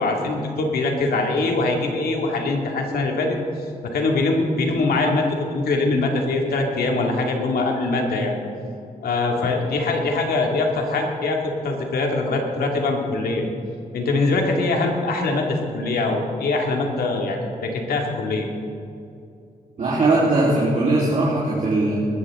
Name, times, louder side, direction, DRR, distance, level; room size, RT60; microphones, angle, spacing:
voice 1, 0.0-3.4 3.8-8.3 9.0-13.5 13.9-18.5, left 3 dB, 90° left, 1 dB, 2.3 m, -23 dB
voice 2, 19.8-22.0, right 2 dB, 55° right, -9 dB, 3.6 m, -19 dB
20.5 x 14.0 x 3.7 m, 2.6 s
wide cardioid pair, 110°, 15 cm